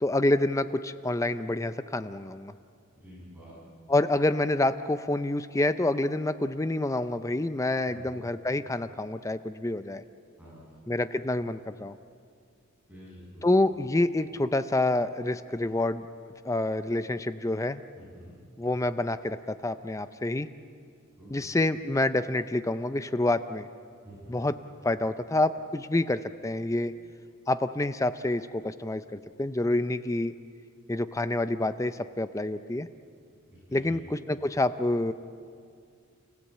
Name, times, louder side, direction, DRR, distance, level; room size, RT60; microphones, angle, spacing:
voice 1, 0.0-2.5 3.9-10.0 10.9-12.0 13.4-16.0 16.4-17.8 18.6-20.5 21.3-23.7 24.3-24.6 24.8-26.9 27.5-30.3 30.9-32.9 33.7-35.1, left 2 dB, 15° left, 12 dB, 0.5 m, -27 dB
voice 2, 2.9-3.5 7.9-8.2 10.4-10.8 12.9-13.6 18.0-18.4 21.2-21.4 24.0-24.4 33.5-34.0, equal, 5° right, -8 dB, 7.1 m, -48 dB
29.5 x 15.5 x 8.5 m, 2.3 s
head